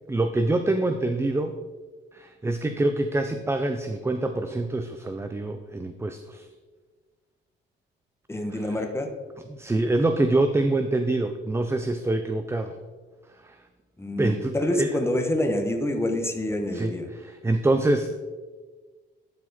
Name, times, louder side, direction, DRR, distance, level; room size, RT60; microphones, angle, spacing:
voice 1, 0.1-1.5 2.1-6.5 8.5-8.6 9.5-12.8 13.4-13.6 14.2-14.9 16.7-18.2, right 2 dB, 15° right, 8 dB, 0.5 m, -25 dB
voice 2, 8.3-9.1 14.0-17.1, left 1 dB, 10° left, 4 dB, 1.2 m, -27 dB
12.0 x 4.7 x 4.2 m, 1.4 s
cardioid pair, 90°, 20 cm